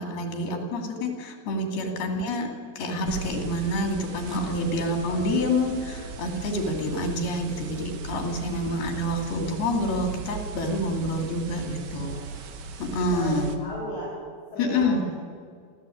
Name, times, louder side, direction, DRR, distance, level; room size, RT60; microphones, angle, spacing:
voice 1, 0.0-12.2 12.8-13.5 14.6-15.0, left 1 dB, 85° left, 3 dB, 4.9 m, -27 dB
sound 1, 3.1-13.6, right 5 dB, 65° right, 2.9 m, -38 dB
sound 2, 5.1-6.9, right 1 dB, 15° right, 3.7 m, -44 dB
voice 2, 12.1-12.5 13.1-14.2 14.5-15.1, equal, 50° left, -8 dB, 9.2 m, -37 dB
28.5 x 13.5 x 8.8 m, 2.1 s
omnidirectional pair, 4.3 m